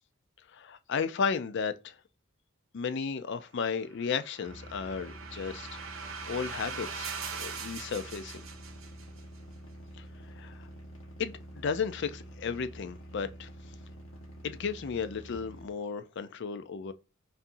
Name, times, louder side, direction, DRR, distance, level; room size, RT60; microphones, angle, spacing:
voice 1, 0.5-1.9 2.7-5.8 6.3-7.1 7.4-8.4 10.4-10.7 11.2-13.5 14.4-16.9, left 6 dB, 60° left, 0.4 m, -34 dB
sound 1, 3.9-9.2, right 6 dB, 75° right, 0.9 m, -41 dB
sound 2, 4.4-15.7, right 1 dB, 75° left, 1.3 m, -48 dB
5.4 x 2.6 x 2.6 m
head